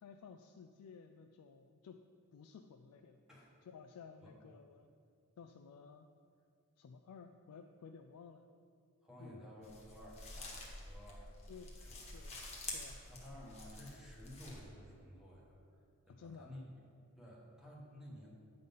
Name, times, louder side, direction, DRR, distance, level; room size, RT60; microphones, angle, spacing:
voice 1, 0.0-2.0 2.3-3.2 3.6-4.9 5.4-6.1 6.8-8.4 9.2-9.5 11.5-11.8 12.1-12.4 12.7-13.1 16.1-16.5, left 6 dB, 80° left, 6 dB, 0.3 m, -55 dB
voice 2, 9.0-11.3 11.8-12.0 13.1-16.6 17.1-18.3, equal, 5° right, -5 dB, 1.4 m, -54 dB
sound 1, 9.6-14.6, left 2 dB, 30° left, 1.3 m, -49 dB
9.2 x 3.9 x 5.4 m, 2.3 s
head